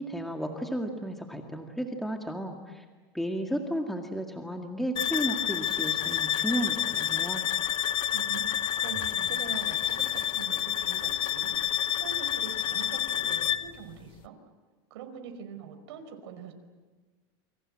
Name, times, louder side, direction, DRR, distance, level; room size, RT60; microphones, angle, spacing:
voice 1, 0.0-2.8 3.1-7.5, equal, ahead, 3 dB, 2.0 m, -33 dB
sound 1, 5.0-13.8, left 11 dB, 35° left, 0.8 m, -29 dB
Zipper (clothing), 5.8-6.3 6.7-7.3 8.1-9.3 9.5-11.3, right 8 dB, 40° right, 3.4 m, -52 dB
voice 2, 8.1-14.4 14.9-16.5, right 7 dB, 80° right, 6 dB, 5.1 m, -44 dB
29.0 x 25.0 x 7.7 m, 1.3 s
supercardioid pair, 140°, 14 cm